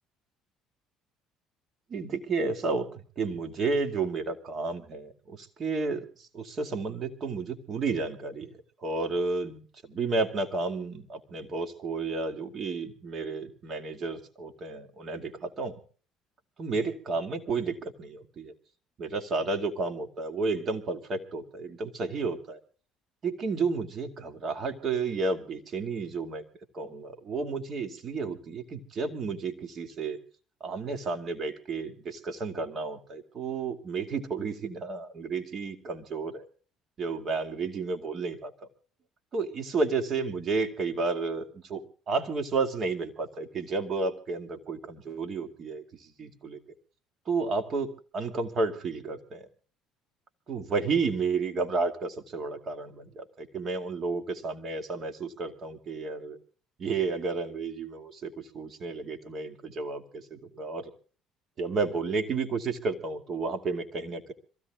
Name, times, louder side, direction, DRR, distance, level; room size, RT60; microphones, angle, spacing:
voice 1, 1.9-15.7 16.6-18.5 19.0-22.6 23.2-26.4 26.7-30.2 30.6-36.5 37.0-38.5 39.3-46.6 47.3-49.4 50.5-56.4 56.8-60.9 61.6-64.3, right 4 dB, 45° right, 7 dB, 2.5 m, -32 dB
26.0 x 16.0 x 2.5 m, 0.41 s
supercardioid pair, 95°, 0 cm